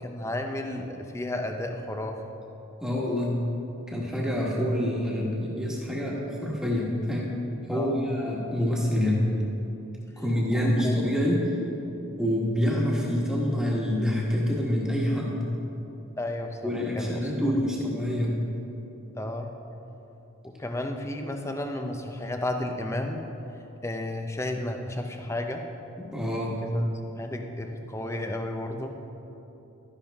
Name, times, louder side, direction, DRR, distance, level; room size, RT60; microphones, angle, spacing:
voice 1, 0.0-2.3 7.7-8.1 10.5-11.0 16.2-17.6 19.2-19.6 20.4-23.2 23.8-25.7 26.6-28.9, left 1 dB, 15° left, 4 dB, 0.6 m, -33 dB
voice 2, 2.8-3.4 3.9-7.3 7.7-9.3 10.2-11.5 12.2-15.4 16.6-18.4 26.0-26.6, equal, 5° right, -4 dB, 1.4 m, -26 dB
12.0 x 10.5 x 3.5 m, 3.0 s
head